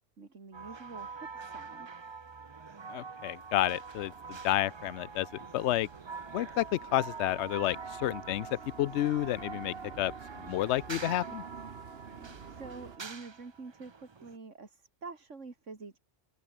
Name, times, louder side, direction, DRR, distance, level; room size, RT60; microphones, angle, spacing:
voice 1, 0.2-1.9 12.5-16.0, right 4 dB, 70° right, 2.9 m, -47 dB
sound 1, 0.5-14.4, right 5 dB, 30° right, 0.6 m, -45 dB
voice 2, 2.9-5.3 5.5-5.9 6.3-11.4, left 14 dB, 70° left, 0.9 m, -31 dB
sound 2, 3.0-13.0, right 6 dB, 55° right, 1.4 m, -51 dB
omnidirectional pair, 1.3 m